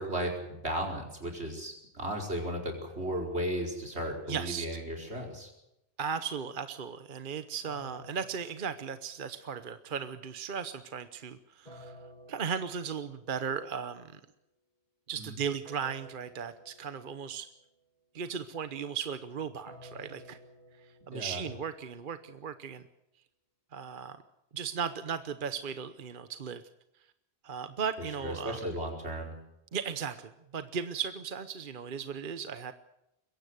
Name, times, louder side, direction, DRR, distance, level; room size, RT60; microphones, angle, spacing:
voice 1, 0.0-5.5 15.2-15.4 21.1-21.5 28.2-29.4, equal, 85° right, 1 dB, 5.1 m, -35 dB
voice 2, 4.3-4.7 6.0-11.9 12.3-14.2 15.1-17.5 18.1-20.4 21.1-22.8 23.7-24.2 24.5-26.6 27.4-28.6 29.7-32.7, right 7 dB, 55° right, 11 dB, 1.1 m, -36 dB
sound 1, 7.7-9.7 11.7-13.5 15.7-17.5 19.7-21.9, equal, 40° left, 2.5 m, -54 dB
22.5 x 16.5 x 8.0 m, 0.84 s
omnidirectional pair, 1.1 m